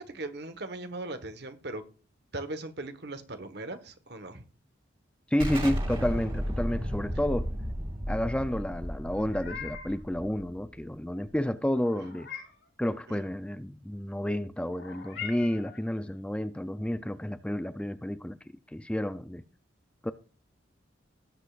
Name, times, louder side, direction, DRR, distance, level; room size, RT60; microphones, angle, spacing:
voice 1, 0.0-1.8 2.3-4.4 13.1-13.2, right 2 dB, 60° right, 1.3 m, -39 dB
voice 2, 5.3-7.5 8.1-12.3 12.8-18.4 18.7-19.4 20.0-20.1, left 1 dB, 5° left, 0.4 m, -30 dB
Explosion, 5.4-10.8, equal, 25° right, 2.4 m, -33 dB
Meow, 9.1-10.0 11.7-12.7 14.7-15.8, left 7 dB, 75° left, 4.1 m, -42 dB
18.5 x 8.1 x 2.5 m
head